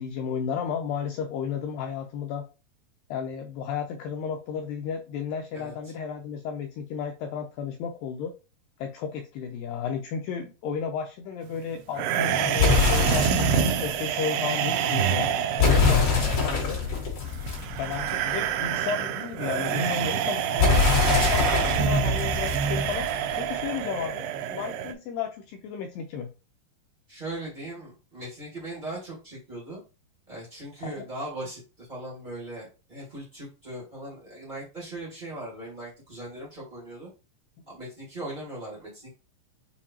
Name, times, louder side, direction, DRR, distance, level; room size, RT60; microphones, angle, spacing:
voice 1, 0.0-2.5 3.1-8.3 8.8-15.3 15.6-16.8 17.8-23.1 23.4-26.3 30.8-31.0, left 7 dB, 85° left, 4 dB, 2.0 m, -33 dB
voice 2, 5.5-5.9 16.5-17.1 21.4-21.6 27.1-29.8 30.3-37.1 37.7-39.1, right 1 dB, 50° right, -6 dB, 0.5 m, -39 dB
sound 1, 11.9-24.9, right 8 dB, 85° right, 2.6 m, -27 dB
sound 2, 12.6-13.8 15.6-18.3 20.6-23.3, left 5 dB, 45° left, 2.2 m, -24 dB
7.1 x 2.6 x 2.8 m, 0.31 s
omnidirectional pair, 4.5 m